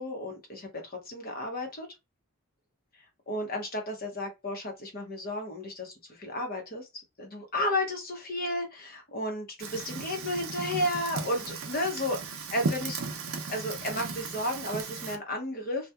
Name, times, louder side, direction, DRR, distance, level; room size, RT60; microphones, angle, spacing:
voice 1, 0.0-1.9 3.3-12.2 12.5-13.0 13.5-15.9, left 1 dB, 40° left, 0.8 m, -33 dB
Fire, 9.6-15.2, right 4 dB, 75° right, 0.6 m, -36 dB
2.8 x 2.2 x 2.2 m
head